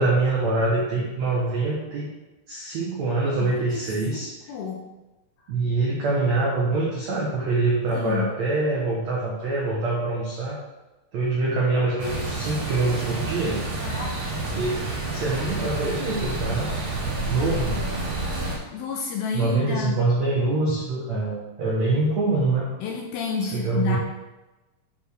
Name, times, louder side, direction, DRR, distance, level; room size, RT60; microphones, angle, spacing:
voice 1, 0.0-2.1 2.5-4.3 5.5-10.6 11.1-13.6 14.5-14.8 15.1-16.7 17.3-17.8 19.3-22.7 23.5-24.0, right 3 dB, 80° right, -4 dB, 1.5 m, -24 dB
voice 2, 3.4-4.9 7.9-8.3 13.8-14.4 18.7-20.0 22.8-24.0, left 6 dB, 75° left, 1 dB, 2.3 m, -31 dB
sound 1, 12.0-18.6, right 2 dB, 60° right, 1.9 m, -29 dB
10.0 x 4.5 x 3.4 m, 1.1 s
omnidirectional pair, 4.8 m